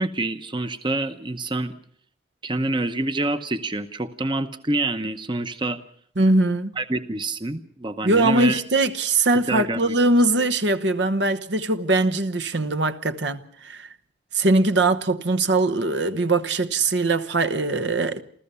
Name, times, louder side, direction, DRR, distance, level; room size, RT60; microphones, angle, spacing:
voice 1, 0.0-1.7 2.4-5.8 6.8-8.6 9.5-9.9, right 2 dB, 25° right, 0.9 m, -27 dB
voice 2, 6.2-6.7 8.0-13.9 14.3-18.2, right 2 dB, 70° right, 1.1 m, -21 dB
29.0 x 14.0 x 6.9 m
head